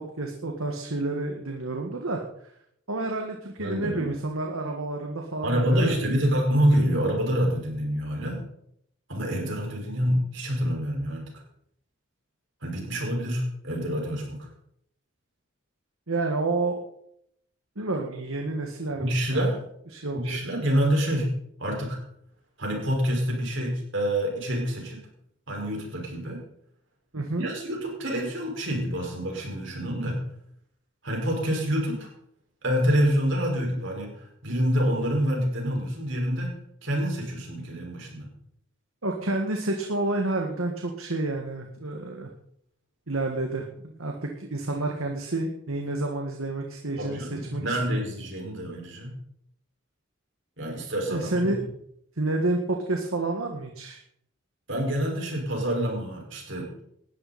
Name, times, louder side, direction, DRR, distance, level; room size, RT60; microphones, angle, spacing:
voice 1, 0.0-2.2 2.9-6.1 16.1-16.8 17.8-19.5 19.9-20.4 27.1-27.5 39.0-42.3 43.1-48.0 51.1-51.6 52.2-54.0, right 2 dB, 75° right, 2 dB, 1.9 m, -29 dB
voice 2, 3.6-4.2 5.4-8.4 9.1-11.2 12.6-14.5 19.0-19.6 20.1-21.3 21.6-22.0 22.6-25.0 25.5-26.4 27.4-30.2 31.0-32.1 32.6-36.5 36.8-38.3 47.0-49.1 50.6-51.5 54.7-56.7, equal, 60° right, 0 dB, 5.7 m, -27 dB
19.5 x 13.0 x 4.3 m, 0.72 s
head